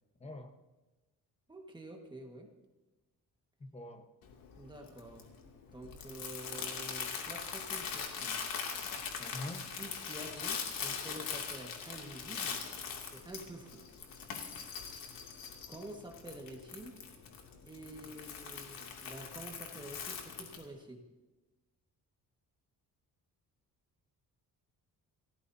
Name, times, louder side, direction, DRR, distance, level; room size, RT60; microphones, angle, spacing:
voice 1, 0.2-0.5 3.6-4.1 9.2-9.6, left 1 dB, 15° left, 6 dB, 1.2 m, -44 dB
voice 2, 1.5-2.5 4.6-5.3 5.7-8.4 9.8-12.6 13.1-13.9 15.7-17.0 17.6-21.0, right 1 dB, 15° right, 1 dB, 1.7 m, -48 dB
Crumpling crinkling, 4.2-20.6, left 6 dB, 70° left, 2.7 m, -42 dB
30.0 x 14.5 x 2.8 m, 1.1 s
cardioid pair, 165°, 36 cm